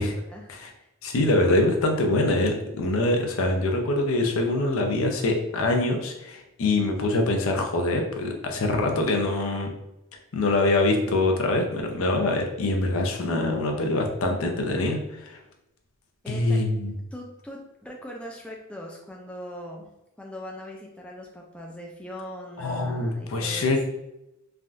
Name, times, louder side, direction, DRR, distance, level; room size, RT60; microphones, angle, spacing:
voice 1, 0.0-0.5 0.8-0.9 16.2-16.6 17.1-19.9 20.2-23.8, equal, 5° left, -1 dB, 0.3 m, -40 dB
voice 2, 1.0-9.7 10.3-15.4 16.3-16.9 22.6-23.8, left 2 dB, 65° left, 3 dB, 0.5 m, -24 dB
3.4 x 2.3 x 2.5 m, 0.90 s
head